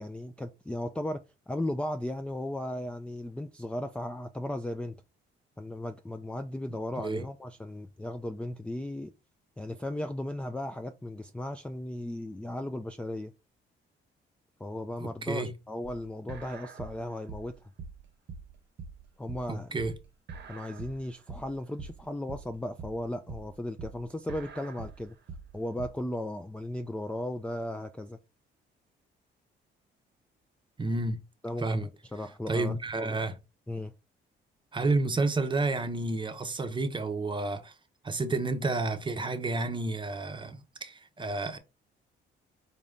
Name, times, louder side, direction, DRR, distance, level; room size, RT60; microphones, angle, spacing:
voice 1, 0.0-5.0 5.6-9.1 9.6-13.3 14.6-17.5 19.2-19.7 20.5-25.2 25.5-28.2 31.4-33.2 33.7-33.9, left 1 dB, 5° left, 0.3 m, -36 dB
voice 2, 15.0-15.5 19.5-19.9 30.8-31.2 31.6-31.9 32.5-33.4 34.7-37.7 38.0-41.6, right 2 dB, 25° right, 0.7 m, -30 dB
sound 1, 15.8-25.9, right 5 dB, 60° right, 0.8 m, -44 dB
4.1 x 2.6 x 3.5 m
cardioid pair, 90°, 20 cm